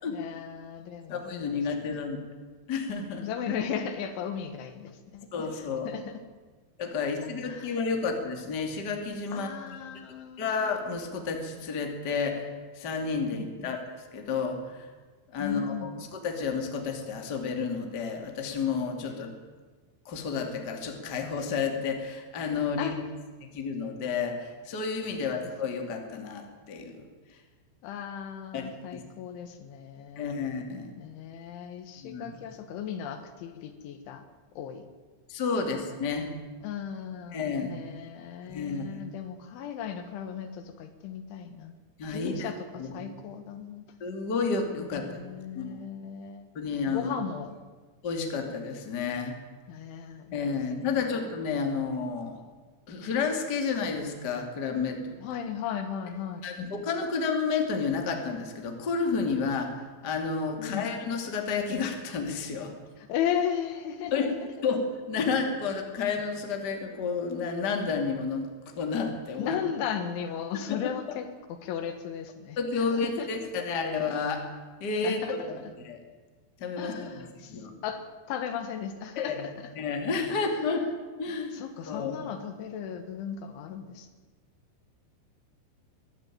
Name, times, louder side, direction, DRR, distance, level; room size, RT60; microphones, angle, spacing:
voice 1, 0.1-1.9 3.2-5.3 5.6-6.2 7.0-7.1 7.5-7.8 9.3-10.5 13.3-13.7 15.4-15.9 22.8-23.2 25.2-25.4 27.8-30.5 31.0-34.2 34.6-34.9 36.6-43.9 44.8-46.5 46.9-47.7 48.1-48.4 49.7-50.6 55.2-56.4 60.6-60.9 63.0-64.5 69.4-73.3 75.0-75.4 75.6-75.7 76.8-79.7 80.3-80.8 81.3-84.1, left 8 dB, 75° left, 8 dB, 3.8 m, -36 dB
voice 2, 1.1-2.2 2.7-3.3 5.3-5.9 6.8-9.9 10.4-12.5 12.7-14.9 15.3-19.3 20.0-22.9 23.4-27.0 27.3-27.4 28.5-28.7 28.9-29.0 30.2-30.9 32.0-32.3 35.3-36.3 37.3-37.7 38.5-39.0 42.0-42.5 42.8-42.9 44.0-45.2 45.5-45.8 46.5-47.1 48.0-49.3 50.3-52.4 52.9-55.2 56.4-62.7 64.1-68.5 68.8-69.5 70.5-70.8 71.1-71.2 72.6-74.4 74.8-76.0 76.6-77.2 77.5-77.7 79.2-79.4 79.8-80.9 81.2-81.6 81.9-82.1, left 5 dB, 30° left, 3 dB, 2.2 m, -31 dB
22.0 x 14.0 x 9.2 m, 1.4 s
omnidirectional pair, 5.6 m